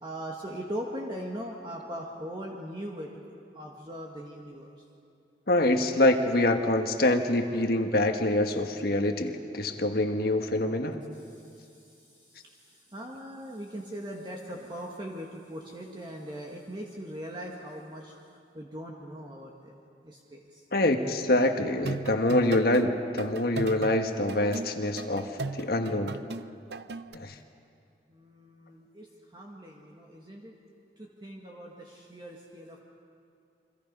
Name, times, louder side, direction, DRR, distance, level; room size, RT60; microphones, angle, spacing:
voice 1, 0.0-3.1 3.5-4.8 11.1-18.1 18.5-20.6 28.1-30.5 31.0-32.8, equal, 25° right, -1 dB, 1.7 m, -40 dB
voice 2, 5.5-11.0 20.7-26.2 27.1-27.3, left 1 dB, 60° left, 5 dB, 1.5 m, -25 dB
sound 1, 21.8-22.8 23.2-27.2, right 3 dB, 65° right, 0.7 m, -37 dB
28.5 x 25.0 x 5.4 m, 2.5 s
head